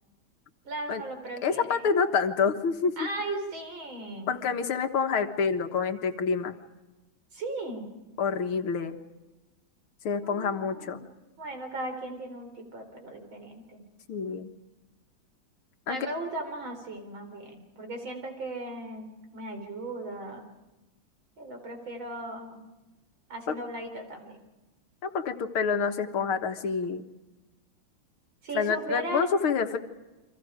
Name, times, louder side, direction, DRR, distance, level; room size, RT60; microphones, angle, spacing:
voice 1, 0.6-1.8 3.0-4.3 7.3-7.9 10.2-11.0 11.4-13.8 15.9-19.1 19.3-20.5 21.4-22.6 23.3-24.4 28.4-29.3, right 2 dB, 65° right, 4 dB, 4.8 m, -37 dB
voice 2, 1.4-3.0 4.3-6.6 8.2-9.0 10.0-11.0 14.1-14.5 15.9-16.0 23.5-23.6 25.0-27.1 28.5-29.8, left 5 dB, 80° left, 6 dB, 2.3 m, -27 dB
29.5 x 25.0 x 5.0 m, 1.1 s
omnidirectional pair, 2.3 m